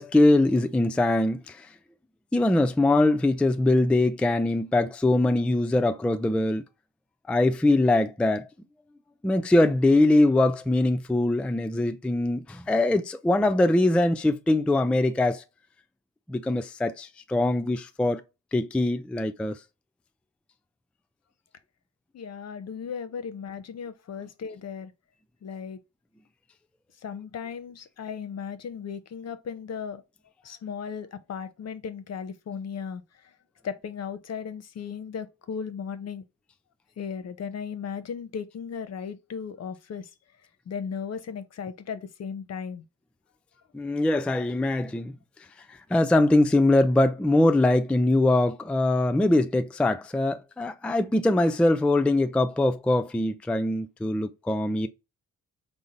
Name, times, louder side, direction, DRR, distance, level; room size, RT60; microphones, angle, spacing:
voice 1, 0.0-1.7 2.3-6.6 7.3-8.5 9.2-15.4 16.3-18.2 18.5-19.6 43.7-45.1 45.7-54.9, left 2 dB, 5° left, 0.3 m, -22 dB
voice 2, 22.1-24.9 25.4-25.8 27.0-30.0 30.4-33.0 33.6-36.2 37.0-40.1 40.7-42.8, left 6 dB, 50° left, 0.6 m, -36 dB
3.7 x 2.0 x 4.0 m
supercardioid pair, 45°, 35 cm